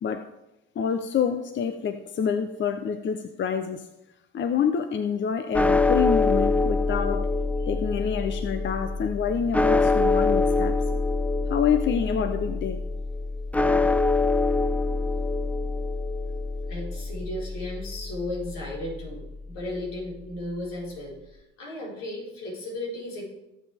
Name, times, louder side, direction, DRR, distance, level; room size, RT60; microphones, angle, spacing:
voice 1, 0.8-3.9 4.3-7.3 7.6-10.8 11.5-12.8, left 7 dB, 40° left, 9 dB, 0.8 m, -27 dB
sound 1, 5.5-19.8, left 3 dB, 5° left, 0.4 m, -25 dB
voice 2, 16.7-23.3, left 1 dB, 80° left, -5 dB, 5.0 m, -35 dB
18.5 x 7.5 x 3.5 m, 0.92 s
supercardioid pair, 80°, 29 cm